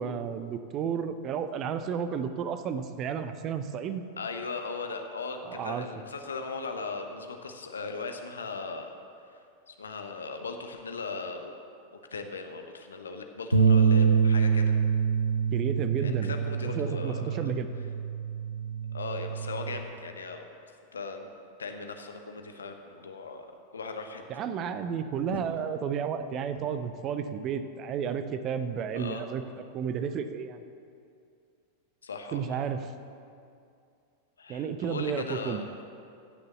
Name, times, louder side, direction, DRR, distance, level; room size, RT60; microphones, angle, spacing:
voice 1, 0.0-4.0 5.4-5.9 15.5-16.3 16.6-17.7 24.3-29.4 29.7-30.6 32.3-32.9 34.5-35.7, right 7 dB, 35° right, 10 dB, 0.7 m, -32 dB
voice 2, 4.2-8.9 9.7-11.5 11.9-14.7 16.0-17.5 18.9-20.5 20.9-21.3 21.6-23.5 23.7-24.2 25.3-25.4 28.9-29.2 32.0-32.6 34.4-35.7, left 4 dB, 70° left, 5 dB, 1.1 m, -38 dB
Bass guitar, 13.5-19.8, right 6 dB, 90° right, 0.9 m, -25 dB
15.5 x 6.9 x 6.9 m, 2.5 s
figure-of-eight pair, 90°, 0 cm